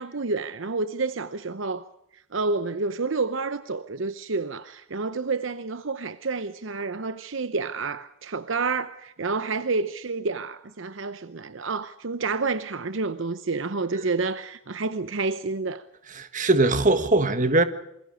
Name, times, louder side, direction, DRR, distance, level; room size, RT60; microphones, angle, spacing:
voice 1, 0.0-1.8 2.3-15.8, right 3 dB, 65° right, 0.9 m, -29 dB
voice 2, 16.1-17.6, right 2 dB, 40° right, 1.7 m, -21 dB
28.0 x 22.0 x 5.0 m
head